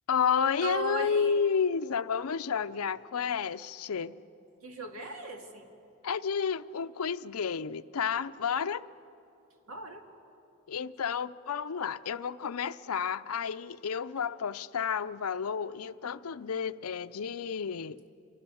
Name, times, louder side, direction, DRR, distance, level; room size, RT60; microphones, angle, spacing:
voice 1, 0.1-4.2 6.0-8.9 10.7-18.0, left 6 dB, 85° left, 11 dB, 0.6 m, -31 dB
voice 2, 0.6-1.4 4.6-5.7 9.7-10.0, right 3 dB, 80° right, 3 dB, 2.4 m, -38 dB
28.0 x 24.0 x 7.0 m, 2.9 s
head